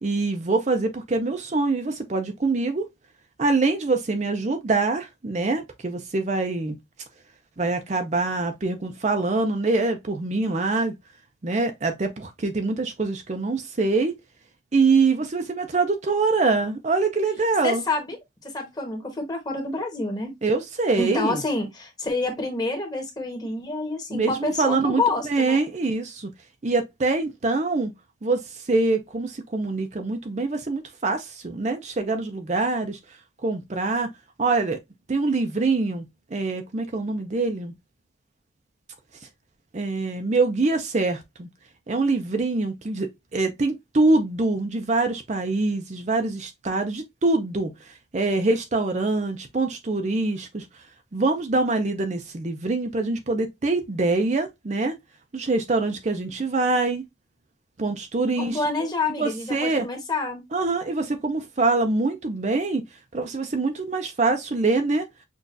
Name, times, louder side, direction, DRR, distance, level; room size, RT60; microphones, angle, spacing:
voice 1, 0.0-2.9 3.4-6.8 7.6-10.9 11.4-14.1 14.7-17.8 20.4-21.4 24.1-26.3 26.6-27.9 28.2-33.0 33.4-34.1 34.4-34.8 35.1-37.7 39.7-41.5 41.9-50.7 51.1-54.9 55.3-57.0 57.8-58.6 59.2-59.9 60.5-62.8 63.1-65.1, right 3 dB, 40° right, 0.5 m, -24 dB
voice 2, 17.6-18.2 18.5-20.3 21.0-25.7 58.4-60.4, left 3 dB, 20° left, 1.1 m, -28 dB
6.0 x 2.5 x 2.5 m
head